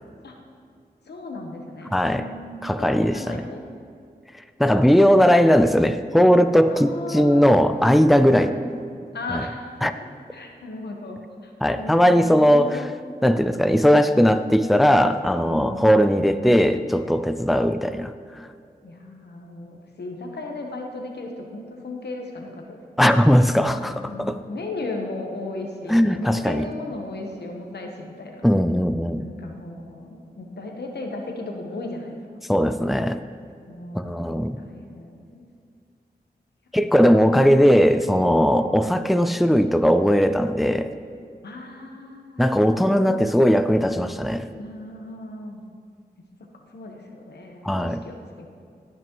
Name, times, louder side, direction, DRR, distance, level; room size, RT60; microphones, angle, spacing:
voice 1, 1.1-3.6 6.7-7.6 8.3-8.6 9.1-9.9 10.3-12.9 15.4-16.2 18.8-22.8 23.6-28.5 29.1-32.4 33.6-35.4 38.6-38.8 41.4-42.5 43.0-43.3 43.6-44.0 44.6-45.6 46.5-48.5, left 2 dB, 90° left, 2 dB, 1.1 m, -36 dB
voice 2, 1.9-2.2 2.6-3.4 4.6-8.5 9.3-9.4 9.8-9.9 11.6-12.9 13.2-18.5 23.0-24.4 25.9-26.6 28.4-29.2 32.5-33.2 33.9-34.6 36.7-40.9 42.4-44.5 47.6-48.0, equal, ahead, 10 dB, 0.4 m, -18 dB
17.0 x 6.1 x 3.1 m, 2.3 s
cardioid pair, 50°, 17 cm